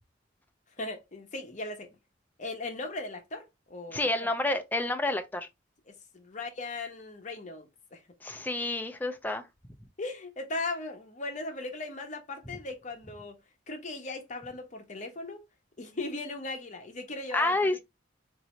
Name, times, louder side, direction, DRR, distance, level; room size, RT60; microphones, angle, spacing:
voice 1, 0.8-1.9 2.4-4.3 5.9-8.0 10.0-13.4 13.7-15.4 15.8-17.6, left 2 dB, 40° left, 0.8 m, -38 dB
voice 2, 3.9-5.5 8.2-9.4 17.3-17.8, left 2 dB, 10° left, 0.4 m, -29 dB
3.9 x 2.7 x 3.1 m
head